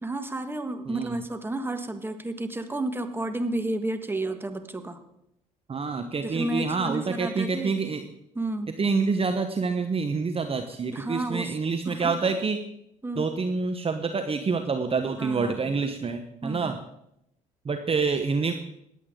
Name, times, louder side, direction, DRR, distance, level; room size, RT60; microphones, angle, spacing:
voice 1, 0.0-5.0 6.2-7.8 8.3-8.7 10.9-11.5 11.8-12.1 13.0-13.3 15.2-15.8 16.4-16.7, right 2 dB, 10° right, 8 dB, 1.6 m, -31 dB
voice 2, 0.8-1.2 5.7-8.0 8.8-12.6 13.2-16.8 17.6-18.5, right 4 dB, 30° right, 7 dB, 1.1 m, -27 dB
20.0 x 8.4 x 3.8 m, 0.79 s
hypercardioid pair, 60°, 18 cm